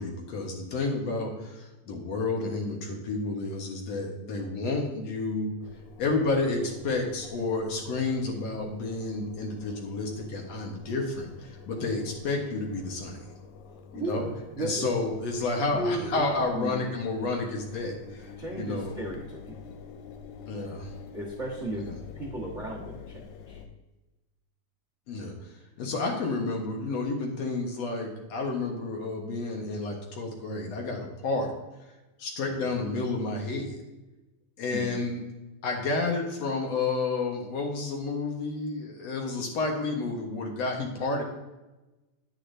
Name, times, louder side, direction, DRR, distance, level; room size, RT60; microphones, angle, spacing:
voice 1, 0.0-5.5 6.0-13.3 13.9-14.3 14.6-18.9 20.5-20.9 21.7-21.9 25.1-25.3 25.8-31.5 32.2-33.8 34.6-35.2 35.6-41.2, left 3 dB, 55° left, 0 dB, 2.2 m, -30 dB
Engine, 5.6-23.7, left 5 dB, 85° left, 2.5 m, -47 dB
voice 2, 13.9-14.9 15.7-16.9 18.4-19.6 21.1-21.9 22.1-23.6 32.5-32.7 34.7-35.0, right 2 dB, 60° right, -1 dB, 0.7 m, -35 dB
10.0 x 9.6 x 2.7 m, 1.1 s
omnidirectional pair, 3.9 m